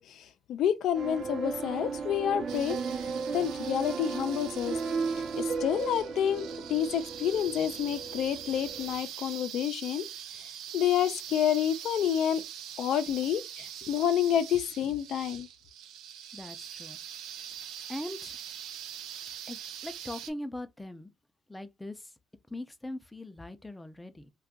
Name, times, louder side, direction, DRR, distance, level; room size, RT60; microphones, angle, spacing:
voice 1, 0.0-2.8 3.3-4.8 5.2-10.1 10.7-12.4 12.8-15.5, left 9 dB, 70° left, 0.5 m, -29 dB
sound 1, 0.9-9.0, right 5 dB, 55° right, 0.8 m, -35 dB
sound 2, 2.5-20.3, right 9 dB, 80° right, 0.4 m, -43 dB
voice 2, 16.3-17.0 17.9-18.4 19.5-21.1 21.5-22.1 22.5-24.3, left 1 dB, 10° left, 0.5 m, -41 dB
2.5 x 2.3 x 3.6 m
cardioid pair, 85°, 0 cm